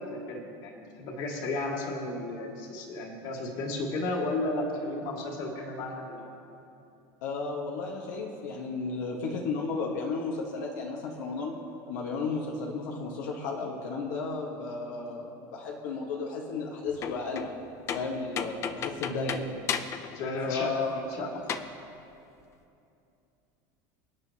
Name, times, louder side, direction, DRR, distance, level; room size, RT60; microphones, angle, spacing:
voice 1, 0.0-6.2 18.4-18.5 19.0-19.3 20.1-20.7 21.1-21.3, left 2 dB, 50° left, 0 dB, 2.1 m, -33 dB
voice 2, 7.2-11.6 11.9-17.5 17.9-19.4 20.5-21.0, left 4 dB, 85° left, -1 dB, 1.4 m, -33 dB
sound 1, 16.9-17.6 17.9-20.2 20.5-20.6 21.5-21.7, left 7 dB, 30° left, 0.5 m, -34 dB
25.0 x 9.3 x 2.9 m, 2.7 s
supercardioid pair, 150°, 9 cm